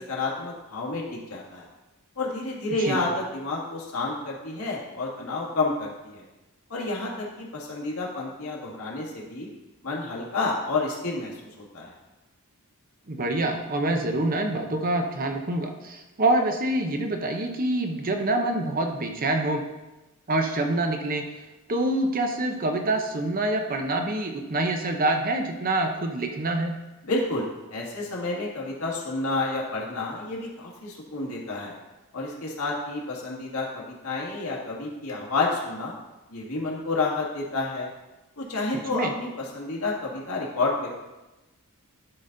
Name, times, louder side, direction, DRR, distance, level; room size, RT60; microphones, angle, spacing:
voice 1, 0.1-1.7 2.2-6.2 6.7-9.5 9.8-11.9 27.0-31.8 32.1-36.0 36.3-37.9 38.4-41.0, left 3 dB, 70° left, -3 dB, 1.9 m, -30 dB
voice 2, 13.1-19.6 20.3-21.2 21.7-26.7 38.9-39.1, right 2 dB, 40° right, 4 dB, 0.8 m, -26 dB
11.5 x 4.0 x 3.9 m, 1.0 s
head